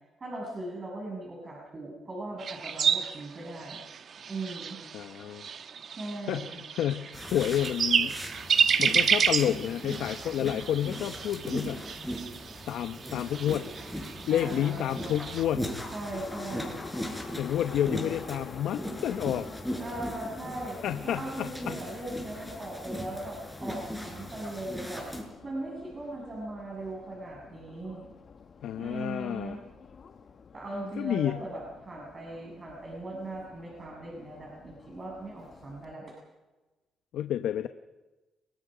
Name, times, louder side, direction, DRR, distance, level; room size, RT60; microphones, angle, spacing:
voice 1, 0.2-3.8 4.3-4.8 6.0-6.6 14.3-15.2 15.9-16.8 19.8-20.8 21.0-25.1 25.4-28.1 28.8-29.6 30.5-36.1, right 2 dB, 35° right, -2 dB, 7.2 m, -39 dB
sound 1, 2.4-15.4, right 7 dB, 55° right, 1.4 m, -30 dB
voice 2, 4.9-5.5 6.3-8.2 8.8-11.8 12.7-13.7 14.3-15.7 17.4-19.5 20.8-21.8 28.6-29.6 31.0-31.4 37.1-37.7, left 11 dB, 80° left, 9 dB, 1.0 m, -30 dB
sound 2, 7.1-25.2, equal, ahead, 6.5 m, -39 dB
Subway metro underground, 16.1-35.9, left 6 dB, 50° left, 1.7 m, -49 dB
29.5 x 21.0 x 5.2 m, 1.1 s
cardioid pair, 90°, 0 cm